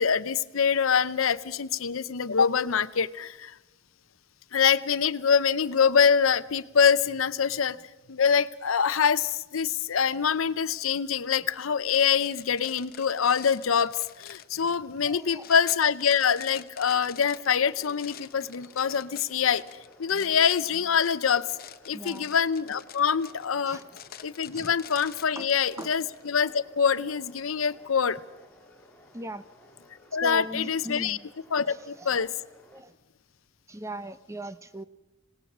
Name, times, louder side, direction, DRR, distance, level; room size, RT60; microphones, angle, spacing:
voice 1, 0.0-3.6 4.5-7.8 8.1-19.6 20.0-21.5 21.9-23.8 24.2-28.2 30.1-31.2 31.5-32.3, left 7 dB, 80° left, 15 dB, 0.7 m, -25 dB
sound 1, 11.9-26.3, left 9 dB, 50° left, 0.8 m, -47 dB
voice 2, 15.0-15.5 21.9-22.3 23.7-23.8 24.5-24.7 25.4-25.5 25.8-25.9 29.1-29.4 30.2-31.3 31.6-32.3 32.7-32.9 33.7-34.8, right 1 dB, 15° right, 13 dB, 0.6 m, -39 dB
sound 2, 17.6-32.8, left 1 dB, 10° left, 3.0 m, -56 dB
27.5 x 18.5 x 6.1 m, 1.0 s
head